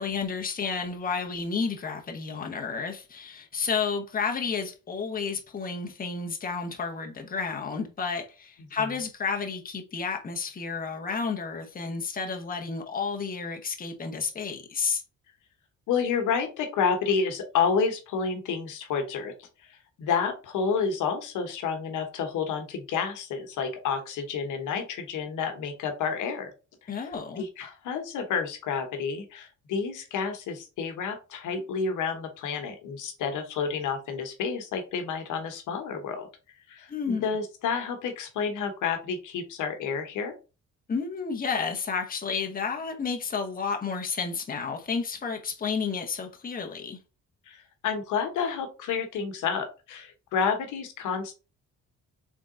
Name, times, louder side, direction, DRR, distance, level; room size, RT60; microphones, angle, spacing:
voice 1, 0.0-15.0 26.9-27.4 36.9-37.2 40.9-47.0, left 5 dB, 30° left, 0.9 m, -31 dB
voice 2, 15.9-26.5 26.9-36.3 36.7-40.3 47.5-51.3, left 6 dB, 80° left, 1.1 m, -30 dB
3.7 x 3.6 x 3.7 m
cardioid pair, 90°, 30 cm